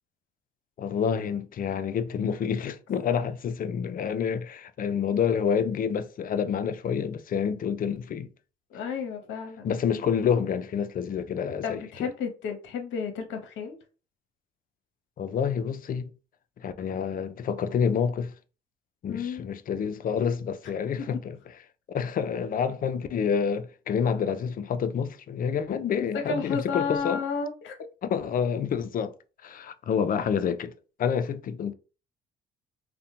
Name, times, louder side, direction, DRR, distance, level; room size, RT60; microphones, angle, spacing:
voice 1, 0.8-8.3 9.6-12.1 15.2-16.1 16.6-18.3 19.0-21.4 21.9-27.2 28.0-29.1 29.4-30.7 31.0-31.7, left 7 dB, 40° left, 0.4 m, -28 dB
voice 2, 8.7-9.7 11.6-13.8 19.1-19.5 21.0-21.1 26.0-27.8, left 5 dB, 65° left, 0.7 m, -32 dB
2.4 x 2.1 x 2.7 m
hypercardioid pair, 55°, 21 cm